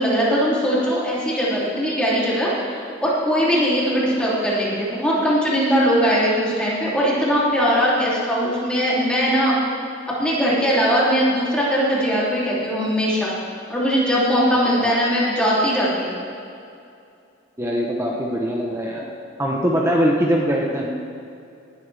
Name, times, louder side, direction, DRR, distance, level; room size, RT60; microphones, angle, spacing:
voice 1, 0.0-2.7 3.0-9.5 10.2-13.3 13.7-16.2, equal, 5° left, -8 dB, 3.0 m, -20 dB
voice 2, 17.6-19.1 19.4-20.9, equal, 15° right, -2 dB, 1.0 m, -22 dB
18.5 x 11.5 x 3.5 m, 2.6 s
head